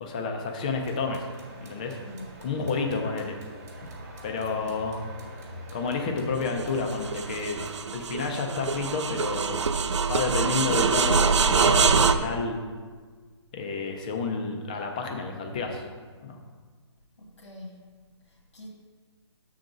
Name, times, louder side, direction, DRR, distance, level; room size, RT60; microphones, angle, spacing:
voice 1, 0.0-1.2 1.6-2.0 2.4-3.4 4.2-5.0 5.7-7.6 7.9-9.7 10.1-12.6 13.5-15.8 16.2-16.4, left 4 dB, 15° left, 3 dB, 0.4 m, -30 dB
sound 1, 0.7-7.8, right 1 dB, 30° right, 1.2 m, -45 dB
voice 2, 2.0-2.4 4.5-4.8 17.2-17.9 18.3-18.7, left 1 dB, 90° left, -3 dB, 1.7 m, -45 dB
sound 2, 6.5-12.1, right 5 dB, 75° right, 0.5 m, -24 dB
6.6 x 3.9 x 6.0 m, 1.5 s
hypercardioid pair, 170°, 15 cm